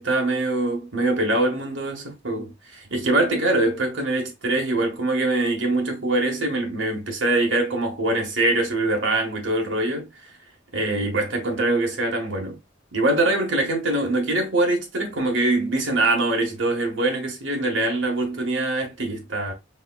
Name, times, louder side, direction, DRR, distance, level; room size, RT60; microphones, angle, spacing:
voice 1, 0.0-10.1 10.7-12.6 12.9-19.5, right 2 dB, 85° right, 1.5 m, -23 dB
4.7 x 3.6 x 2.3 m
head